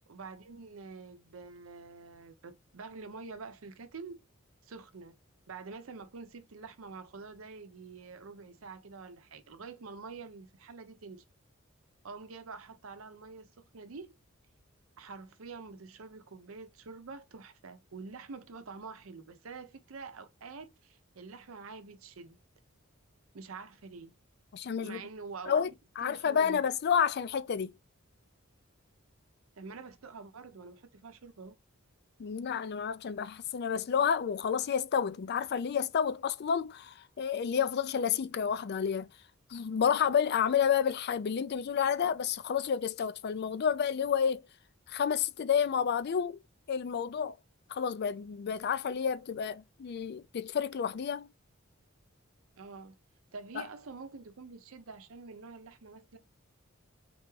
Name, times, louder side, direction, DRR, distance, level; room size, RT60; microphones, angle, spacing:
voice 1, 0.1-4.2 4.6-5.2 5.5-11.2 12.0-14.1 15.0-22.4 23.3-24.1 24.8-25.8 26.0-26.6 29.6-31.6 52.6-53.0 53.3-56.2, right 4 dB, 80° right, 0.7 m, -47 dB
voice 2, 24.5-25.0 25.5-25.7 26.0-27.7 32.2-39.1 39.5-44.4 44.9-46.4 46.7-47.3 47.7-51.3, left 7 dB, 50° left, 0.4 m, -30 dB
3.8 x 3.4 x 3.1 m
head